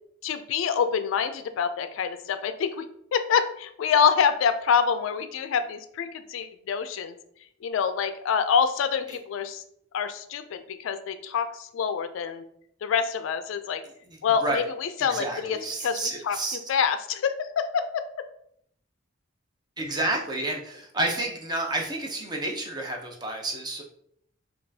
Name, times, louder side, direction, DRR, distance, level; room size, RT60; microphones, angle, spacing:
voice 1, 0.2-2.8 3.1-7.1 7.6-9.6 9.9-12.4 12.8-13.8 14.2-16.0 16.2-16.4 16.7-18.1, left 6 dB, 70° left, 10 dB, 0.3 m, -26 dB
voice 2, 14.1-14.6 15.0-16.6 19.8-23.8, right 2 dB, 20° right, 1 dB, 0.5 m, -30 dB
5.2 x 2.3 x 2.7 m, 0.69 s
head